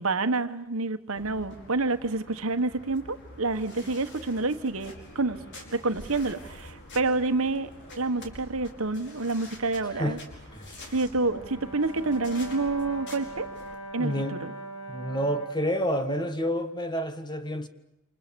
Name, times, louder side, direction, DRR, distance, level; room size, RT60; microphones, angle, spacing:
voice 1, 0.0-5.4 5.7-7.7 8.0-10.2 10.9-13.5 13.9-14.5, right 3 dB, 65° right, 1.4 m, -28 dB
sound 1, 1.2-13.8, left 1 dB, 55° left, 5.1 m, -47 dB
voice 2, 9.8-10.2 10.5-10.7 13.9-14.4 14.9-17.7, equal, 20° left, 1.6 m, -29 dB
Brass instrument, 11.3-15.7, right 2 dB, 70° left, 2.9 m, -40 dB
28.5 x 27.5 x 7.0 m
head